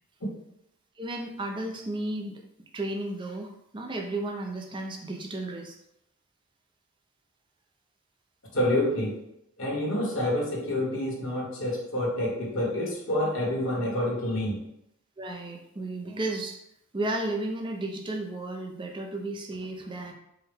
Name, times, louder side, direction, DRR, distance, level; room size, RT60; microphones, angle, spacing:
voice 1, 1.0-2.4 2.7-5.8 13.7-13.8 15.2-16.6 16.9-20.1, right 2 dB, 25° right, 1 dB, 0.4 m, -33 dB
voice 2, 8.5-9.1 9.6-14.6, left 1 dB, 65° left, -3 dB, 1.2 m, -28 dB
4.5 x 2.2 x 3.3 m, 0.79 s
head